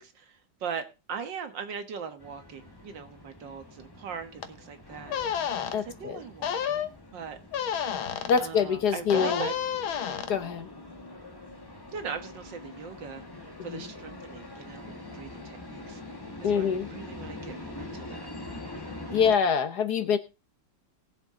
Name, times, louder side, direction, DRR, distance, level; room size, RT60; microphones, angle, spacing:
voice 1, 0.0-5.2 5.8-7.4 8.4-9.5 10.3-10.5 11.9-16.0 16.4-18.3, right 6 dB, 65° right, 8 dB, 2.0 m, -40 dB
sound 1, 2.2-19.3, left 2 dB, 15° left, 1.5 m, -44 dB
sound 2, 4.4-4.5 5.1-5.7 6.4-6.9 7.5-8.4 9.1-10.3, left 8 dB, 85° left, 1.8 m, -30 dB
voice 2, 5.7-6.2 8.3-9.5 10.3-10.7 13.7-13.9 16.4-16.9 19.1-20.2, left 6 dB, 60° left, 10 dB, 1.4 m, -25 dB
19.0 x 7.5 x 3.7 m, 0.28 s
omnidirectional pair, 2.1 m